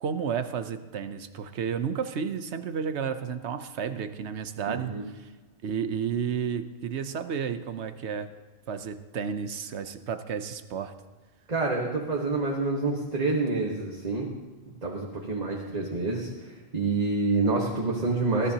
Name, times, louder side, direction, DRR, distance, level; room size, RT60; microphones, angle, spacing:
voice 1, 0.0-5.3 5.6-8.3 8.7-10.9, right 7 dB, 70° right, 10 dB, 1.0 m, -32 dB
voice 2, 4.7-5.0 11.5-14.3 14.8-18.5, right 3 dB, 35° right, -2 dB, 1.4 m, -27 dB
21.5 x 13.5 x 2.9 m, 1.3 s
omnidirectional pair, 1.2 m